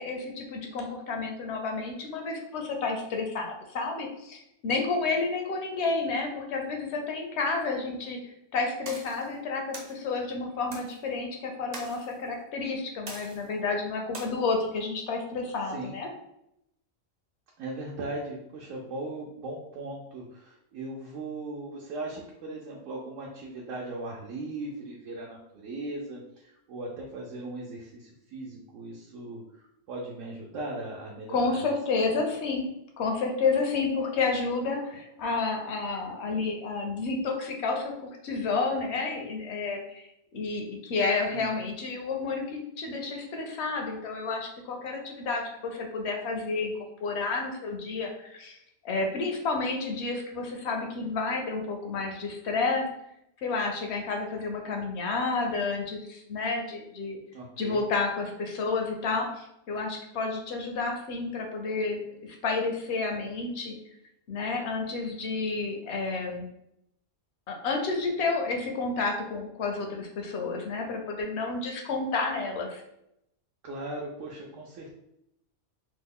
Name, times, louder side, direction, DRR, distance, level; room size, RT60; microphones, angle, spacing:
voice 1, 0.0-8.2 8.5-16.1 31.3-32.7 33.0-46.7 47.0-48.6 48.8-52.9 53.4-57.2 57.6-63.7 64.3-66.5 67.5-72.8, left 4 dB, 65° left, 2 dB, 0.8 m, -30 dB
sound 1, 8.9-9.3 9.7-10.0 10.7-11.0 11.7-12.1 13.1-13.5 14.1-14.2, right 2 dB, 50° right, 0.5 m, -42 dB
voice 2, 17.6-31.7 32.0-32.2 41.3-41.5 57.3-57.8 73.6-74.9, right 2 dB, 75° right, -2 dB, 0.9 m, -38 dB
3.0 x 2.1 x 3.6 m, 0.80 s
omnidirectional pair, 1.3 m